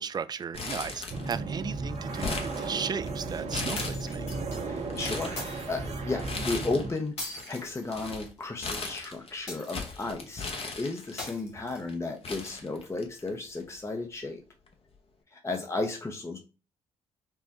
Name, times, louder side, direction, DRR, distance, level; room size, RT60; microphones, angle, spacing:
voice 1, 0.0-4.3, right 6 dB, 30° right, 0.3 m, -35 dB
Crumpling crinkling, 0.5-1.5 1.8-3.1 3.5-4.3 4.8-5.4 6.2-7.0 7.2-11.3 11.9-12.0 12.2-13.3 13.6-13.7 14.7-14.9, left 4 dB, 45° left, 0.9 m, -37 dB
sound 1, 1.1-6.9, right 3 dB, 50° right, 0.8 m, -35 dB
sound 2, 3.7-4.6 5.4-5.9 7.2-8.4 9.5-10.1 11.2-12.1, left 2 dB, 90° left, 0.9 m, -41 dB
voice 2, 4.6-14.4 15.3-16.4, left 3 dB, 20° left, 0.7 m, -34 dB
5.4 x 2.1 x 2.8 m
hypercardioid pair, 45°, 14 cm